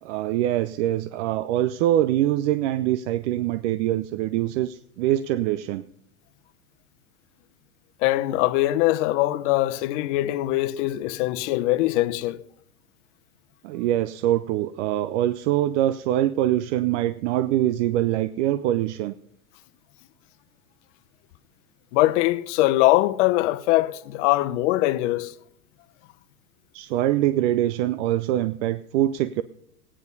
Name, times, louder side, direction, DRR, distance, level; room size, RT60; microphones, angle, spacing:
voice 1, 0.0-5.8 13.6-19.1 26.7-29.4, right 13 dB, 55° right, 0.7 m, -24 dB
voice 2, 8.0-12.4 21.9-25.3, left 16 dB, 55° left, 1.0 m, -22 dB
15.5 x 10.0 x 5.4 m
hypercardioid pair, 125°, 43 cm